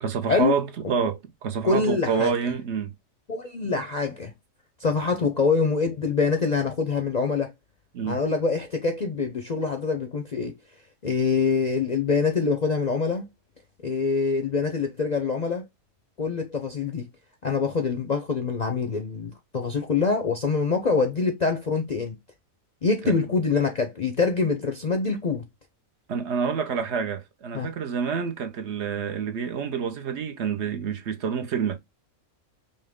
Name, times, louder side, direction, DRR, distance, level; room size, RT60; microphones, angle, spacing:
voice 1, 0.0-2.9 7.9-8.2 23.0-23.1 26.1-31.8, right 6 dB, 60° right, 1.0 m, -28 dB
voice 2, 1.6-2.3 3.3-4.3 4.8-7.5 8.0-10.5 11.0-13.2 13.8-15.6 16.2-17.1 17.4-22.1 22.8-25.4 27.5-27.7, left 4 dB, 45° left, 0.6 m, -25 dB
5.5 x 2.1 x 3.5 m
omnidirectional pair, 1.4 m